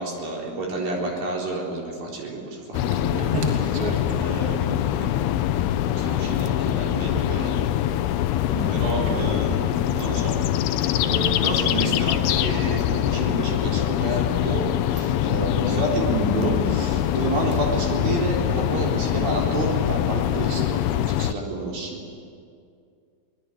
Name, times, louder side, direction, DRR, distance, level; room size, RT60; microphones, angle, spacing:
voice 1, 0.0-3.4 4.1-5.1 6.0-7.6 8.7-10.4 10.8-22.0, right 2 dB, 55° right, -1 dB, 5.6 m, -29 dB
sound 1, 2.7-21.3, left 12 dB, 80° left, 2.3 m, -24 dB
voice 2, 2.9-4.0 8.5-9.4, right 2 dB, 25° right, 1 dB, 2.3 m, -30 dB
23.5 x 20.5 x 9.9 m, 2.3 s
omnidirectional pair, 5.3 m